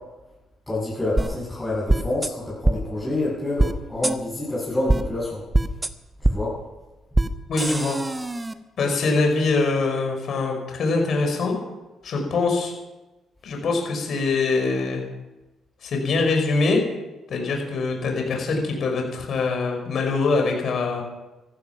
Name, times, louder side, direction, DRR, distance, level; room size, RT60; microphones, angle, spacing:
voice 1, 0.7-5.4 6.2-6.5, left 2 dB, 10° left, -8 dB, 7.6 m, -27 dB
sound 1, 1.2-1.3 1.9-2.3 2.6-2.8 3.6-3.7 4.0-4.1 4.9-5.0 5.5-5.9 6.2-6.3 7.1-7.3 7.6-8.5, right 2 dB, 15° right, 1.1 m, -21 dB
voice 2, 7.5-8.0 8.8-11.6 12.0-12.7 13.4-15.0 15.8-16.8 17.3-21.0, left 3 dB, 60° left, 2 dB, 5.4 m, -23 dB
15.5 x 14.5 x 5.9 m, 1.1 s
cardioid pair, 90°, 0 cm